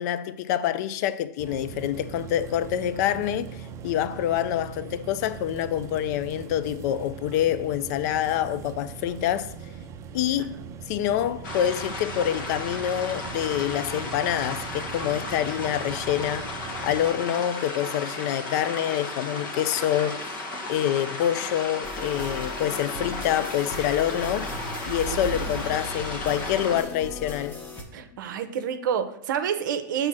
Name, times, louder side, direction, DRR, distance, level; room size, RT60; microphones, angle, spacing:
voice 1, 0.0-9.5 10.1-16.5 16.8-20.4 20.7-24.5 24.8-27.6, left 11 dB, 55° left, 0.4 m, -26 dB
sound 1, 1.4-17.1, right 6 dB, 30° right, 0.5 m, -41 dB
sound 2, 11.4-26.8, left 2 dB, 70° left, 1.4 m, -35 dB
sound 3, 21.8-27.8, left 1 dB, 15° left, 1.0 m, -37 dB
voice 2, 27.9-30.1, right 8 dB, 75° right, 0.6 m, -28 dB
6.0 x 3.3 x 5.9 m
hypercardioid pair, 125°, 11 cm